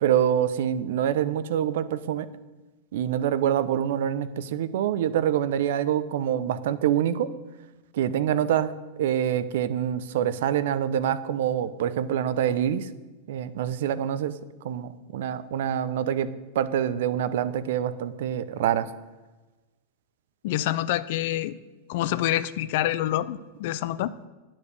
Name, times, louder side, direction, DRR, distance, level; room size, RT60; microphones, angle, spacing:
voice 1, 0.0-2.3 2.9-7.3 7.9-8.7 9.0-12.9 13.3-14.3 14.6-16.3 16.5-18.9, right 10 dB, 65° right, 14 dB, 0.7 m, -25 dB
voice 2, 20.4-21.6 21.9-24.1, left 13 dB, 60° left, 16 dB, 0.5 m, -27 dB
9.7 x 7.3 x 6.6 m, 1.2 s
hypercardioid pair, 100°, 0 cm